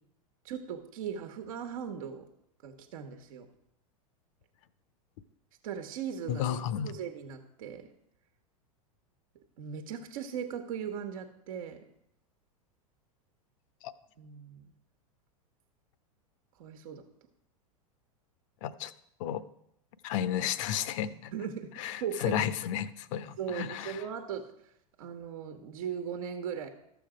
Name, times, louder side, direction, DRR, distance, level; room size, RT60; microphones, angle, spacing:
voice 1, 0.4-2.3 2.6-3.5 5.6-7.9 9.6-11.8 14.2-14.7 16.6-17.0 21.3-21.7 22.0-22.4 23.4-24.5 25.0-26.7, right 8 dB, 65° right, 5 dB, 1.2 m, -38 dB
voice 2, 6.3-6.9 13.8-13.9 18.6-18.9 19.2-19.4 20.0-21.3 21.8-24.0, left 10 dB, 55° left, 15 dB, 0.7 m, -32 dB
13.0 x 6.9 x 5.0 m, 0.77 s
hypercardioid pair, 95°, 19 cm